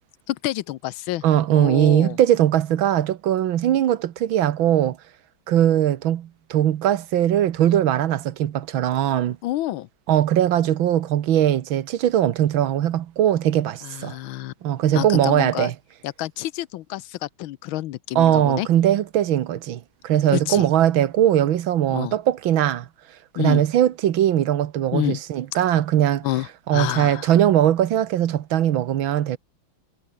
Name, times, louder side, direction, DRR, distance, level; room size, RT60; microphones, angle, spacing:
voice 1, 0.3-1.2 1.5-2.2 9.4-9.9 13.8-14.5 14.9-15.7 16.0-18.7 20.3-20.7 21.9-22.2 23.3-23.6 24.9-25.2 26.2-27.3, left 15 dB, 80° left, 1.5 m, -28 dB
voice 2, 1.2-5.0 5.5-9.4 10.1-14.2 14.6-15.8 18.2-22.9 23.3-29.4, right 11 dB, 75° right, 1.8 m, -20 dB
omnidirectional pair, 2.3 m